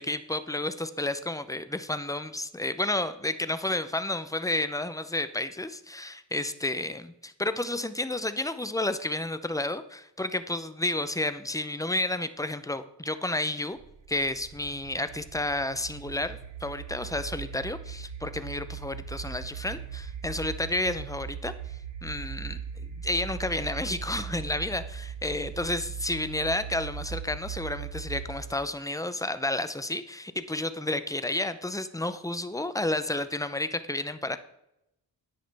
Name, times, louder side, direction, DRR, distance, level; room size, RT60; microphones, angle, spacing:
voice 1, 0.0-13.8 14.1-21.5 22.0-34.4, left 2 dB, 10° left, 12 dB, 0.6 m, -31 dB
sound 1, 13.8-28.7, right 7 dB, 90° right, 0.9 m, -39 dB
9.8 x 9.6 x 3.4 m, 0.85 s
wide cardioid pair, 95°, 44 cm